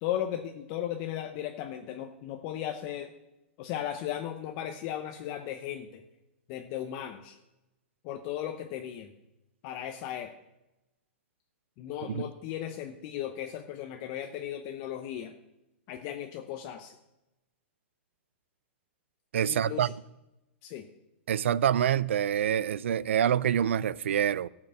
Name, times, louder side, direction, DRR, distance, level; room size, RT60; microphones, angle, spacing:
voice 1, 0.0-3.1 3.6-6.0 6.5-7.4 8.0-9.1 9.6-10.3 11.8-15.3 15.9-16.9 19.4-19.9 20.6-20.9, left 11 dB, 35° left, 0.8 m, -36 dB
voice 2, 19.3-19.9 21.3-24.5, right 9 dB, 80° right, 0.4 m, -26 dB
13.0 x 5.9 x 7.5 m
hypercardioid pair, 155°, 7 cm